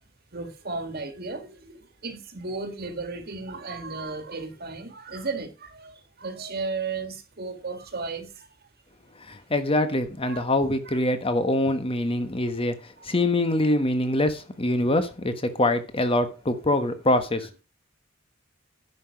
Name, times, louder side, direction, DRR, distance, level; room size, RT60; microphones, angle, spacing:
voice 1, 0.3-8.3 10.2-10.5 10.9-11.0 13.0-13.1 13.6-13.8, right 3 dB, 50° right, 1.7 m, -35 dB
voice 2, 9.3-12.7 13.0-17.5, left 1 dB, 25° left, 1.2 m, -24 dB
11.0 x 5.9 x 5.2 m
head